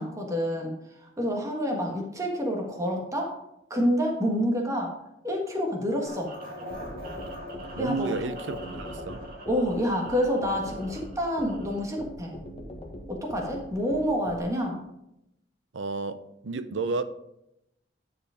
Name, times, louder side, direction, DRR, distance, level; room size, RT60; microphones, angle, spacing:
voice 1, 0.0-3.3 3.7-4.9 5.2-6.3 7.8-8.1 9.5-12.4 13.1-14.8, equal, 15° right, 1.4 m, -28 dB
sound 1, 6.1-12.0, equal, 50° right, 2.1 m, -42 dB
sound 2, 6.7-14.4, equal, 30° left, 1.4 m, -41 dB
voice 2, 7.8-9.2 15.7-17.0, right 4 dB, 90° right, 0.6 m, -32 dB
10.0 x 4.9 x 5.0 m
head